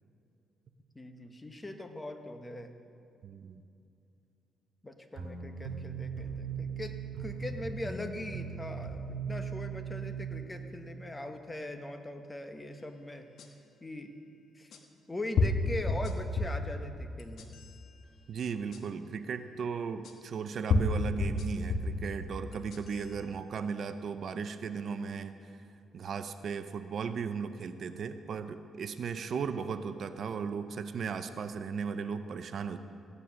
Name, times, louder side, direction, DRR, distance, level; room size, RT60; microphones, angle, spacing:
voice 1, 0.9-2.7 4.8-13.3 13.8-14.1 14.6-14.7 15.1-17.5, left 1 dB, 15° left, 6 dB, 1.1 m, -41 dB
voice 2, 3.2-3.6 18.3-25.5 25.9-32.8, right 6 dB, 55° right, 10 dB, 0.6 m, -36 dB
sound 1, 5.1-10.5, right 6 dB, 75° right, 2.1 m, -38 dB
sound 2, 13.4-13.5 14.7-14.8 15.4-16.7 17.2-17.8 18.7-18.8 20.0-20.1 20.7-22.0 22.5-23.1, left 3 dB, 65° left, 1.3 m, -29 dB
15.0 x 9.8 x 6.3 m, 2.6 s
cardioid pair, 110°, 0 cm